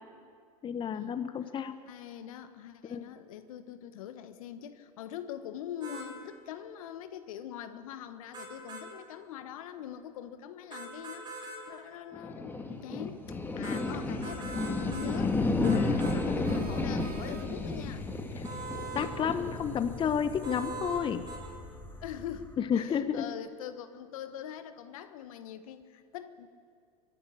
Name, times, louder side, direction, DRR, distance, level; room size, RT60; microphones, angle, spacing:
voice 1, 0.6-1.7 2.9-3.0 15.6-15.9 18.9-21.2 22.6-23.3, left 8 dB, 25° left, 11 dB, 1.0 m, -30 dB
voice 2, 1.8-18.1 22.0-22.4 22.7-26.5, left 10 dB, 65° left, 10 dB, 1.4 m, -43 dB
sound 1, 5.8-6.1 8.3-8.9 10.7-11.6 13.6-13.8 14.2-15.1 15.6-16.2 18.4-19.1 20.4-21.0 21.3-21.4, right 3 dB, 25° right, 7.1 m, -41 dB
sound 2, 12.1-22.5, left 2 dB, 10° left, 1.9 m, -33 dB
sound 3, 16.4-17.9, right 4 dB, 75° right, 2.2 m, -50 dB
24.5 x 11.0 x 9.9 m, 2.2 s
hypercardioid pair, 95°, 19 cm